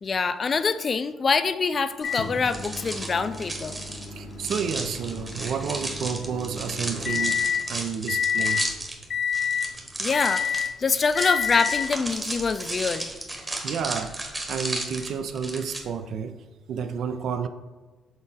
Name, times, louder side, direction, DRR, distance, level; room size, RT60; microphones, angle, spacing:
voice 1, 0.0-3.7 10.0-13.1, left 5 dB, 40° left, 0.3 m, -25 dB
Microwave oven, 2.0-7.7 8.1-8.7 9.1-9.7 10.1-10.8 11.1-12.0 12.9-13.0 15.0-15.1, left 7 dB, 60° left, 0.8 m, -29 dB
sound 1, 2.0-15.8, right 2 dB, 20° right, 1.0 m, -34 dB
voice 2, 4.1-8.7 13.6-16.4 16.7-17.5, right 7 dB, 70° right, 0.4 m, -31 dB
6.3 x 3.7 x 4.0 m
cardioid pair, 100°, 0 cm